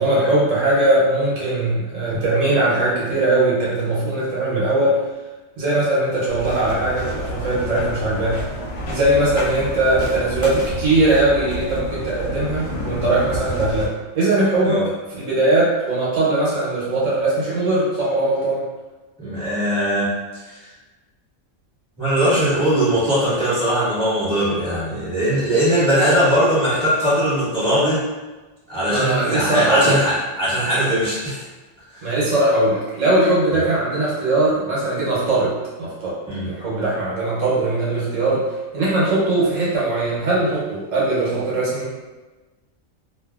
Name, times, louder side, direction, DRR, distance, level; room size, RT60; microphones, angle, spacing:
voice 1, 0.0-5.0 5.6-8.4 8.9-14.8 15.1-18.6 28.9-30.0 32.0-38.4 38.7-41.9, right 2 dB, 70° right, -7 dB, 1.2 m, -20 dB
sound 1, 6.3-13.9, left 1 dB, 70° left, 0.9 m, -29 dB
voice 2, 19.2-20.1 20.5-20.6 22.0-28.0 28.7-30.1 30.4-31.4 31.9-32.0 33.5-33.6 36.3-36.5, equal, 5° left, -12 dB, 1.3 m, -20 dB
2.6 x 2.5 x 2.3 m, 1.2 s
omnidirectional pair, 1.4 m